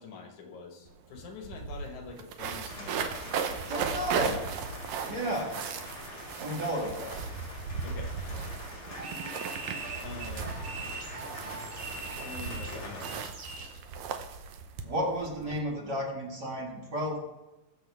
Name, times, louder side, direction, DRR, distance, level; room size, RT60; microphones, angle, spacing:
voice 1, 0.0-3.1 4.7-4.8 7.8-8.1 10.0-10.6 10.8-11.2 12.2-13.1, left 4 dB, 85° left, 3 dB, 2.9 m, -45 dB
sound 1, 0.9-1.0 1.2-15.6, right 6 dB, 80° right, 2.1 m, -37 dB
sound 2, 2.7-13.2, left 1 dB, 45° left, 4.0 m, -44 dB
voice 2, 3.7-4.4 5.1-5.5 6.4-7.3 14.8-17.2, equal, 40° right, -1 dB, 2.2 m, -32 dB
sound 3, 8.9-13.8, right 4 dB, 60° right, 3.2 m, -42 dB
20.5 x 6.8 x 3.5 m, 1.0 s
omnidirectional pair, 3.3 m